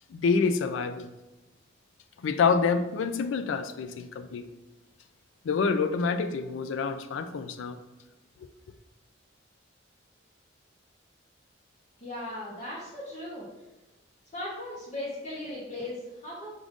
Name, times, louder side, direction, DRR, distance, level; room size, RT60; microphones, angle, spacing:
voice 1, 0.1-1.1 2.2-4.5 5.4-7.8, left 5 dB, 75° left, 10 dB, 0.3 m, -27 dB
voice 2, 12.0-13.5 14.3-16.6, left 1 dB, 35° left, -8 dB, 0.8 m, -37 dB
4.9 x 2.5 x 3.6 m, 1.1 s
head